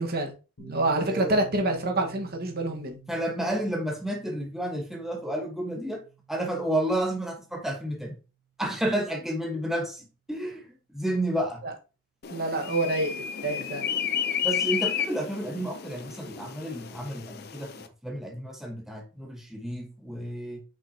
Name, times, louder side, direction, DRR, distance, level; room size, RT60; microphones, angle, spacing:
voice 1, 0.0-3.0 11.6-11.7 12.3-13.9, right 2 dB, 45° right, 1.4 m, -27 dB
Piano, 0.6-8.0, right 7 dB, 75° left, 2.0 m, -49 dB
voice 2, 1.0-1.3 3.1-8.2 8.6-10.6 10.9-11.6 14.4-20.6, right 1 dB, ahead, 1.2 m, -31 dB
sound 1, 12.2-17.9, left 8 dB, 45° left, 0.5 m, -32 dB
6.2 x 5.5 x 2.8 m
head